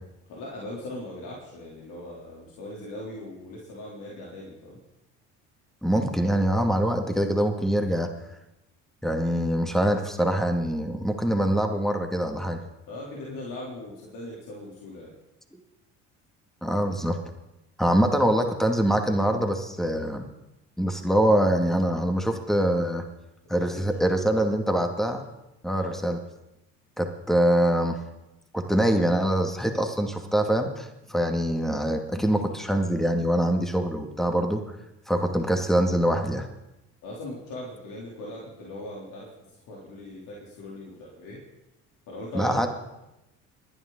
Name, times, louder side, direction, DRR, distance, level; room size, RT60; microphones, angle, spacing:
voice 1, 0.3-4.8 12.9-15.1 23.5-24.0 25.7-26.0 37.0-41.4 42.1-42.7, left 1 dB, 70° left, -4 dB, 3.4 m, -39 dB
voice 2, 5.8-8.1 9.0-12.6 16.6-17.2 17.8-20.2 20.8-23.0 23.5-25.2 25.6-26.2 27.0-28.0 28.5-34.6 35.1-36.5 42.3-42.7, right 1 dB, ahead, 4 dB, 2.2 m, -24 dB
27.5 x 11.0 x 4.0 m, 0.92 s
supercardioid pair, 75°, 33 cm